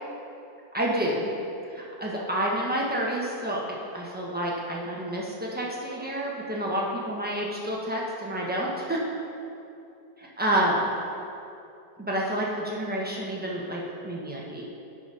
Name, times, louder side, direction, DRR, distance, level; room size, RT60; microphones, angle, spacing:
voice 1, 0.7-1.3 1.7-9.0 10.2-11.0 12.0-14.6, right 1 dB, 10° right, -4 dB, 0.5 m, -29 dB
11.5 x 4.0 x 5.5 m, 2.6 s
omnidirectional pair, 2.1 m